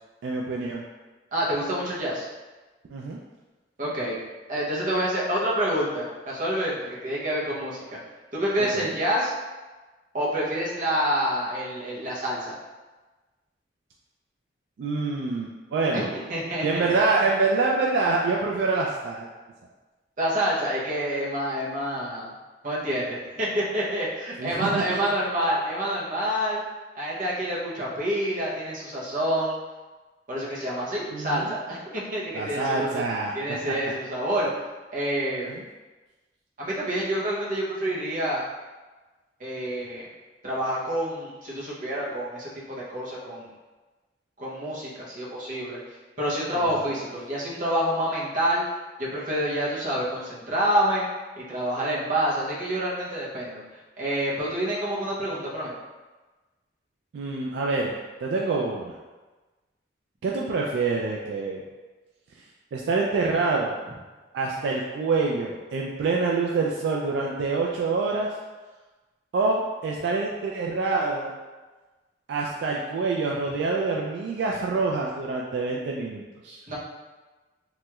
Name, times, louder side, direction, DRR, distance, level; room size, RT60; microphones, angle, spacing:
voice 1, 0.2-0.8 2.9-3.2 8.6-8.9 14.8-16.1 16.6-19.3 24.4-25.0 31.1-31.5 32.3-33.3 35.4-35.6 57.1-57.9 58.2-59.0 60.2-61.6 62.7-63.7 64.3-68.3 69.3-71.3 72.3-76.6, right 3 dB, 75° right, -2 dB, 0.3 m, -26 dB
voice 2, 1.3-2.3 3.8-4.2 4.5-7.8 8.3-9.3 10.1-12.5 15.9-16.9 20.2-22.3 22.6-26.6 26.9-29.6 30.3-33.0 33.3-34.5 34.9-35.5 36.6-38.5 39.4-40.1 40.4-43.5 44.4-45.8 46.2-48.6 49.0-51.1 51.4-53.6 54.0-55.7 76.7-76.8, equal, 50° right, -6 dB, 0.8 m, -27 dB
3.0 x 2.9 x 2.3 m, 1.2 s
head